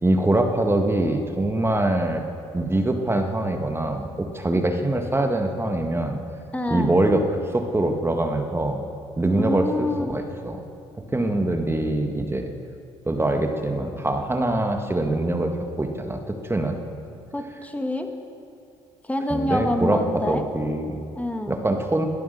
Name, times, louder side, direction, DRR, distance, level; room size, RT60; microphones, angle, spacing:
voice 1, 0.0-2.2 2.5-6.2 6.7-8.8 9.2-10.6 11.1-12.5 13.1-16.8 19.3-21.0 21.5-22.0, right 1 dB, 15° right, 4 dB, 1.8 m, -23 dB
voice 2, 6.5-6.9 9.4-10.1 17.3-18.1 19.1-20.4 21.1-21.5, left 1 dB, 10° left, 5 dB, 2.1 m, -26 dB
20.0 x 9.2 x 6.8 m, 2.5 s
hypercardioid pair, 55°, 14 cm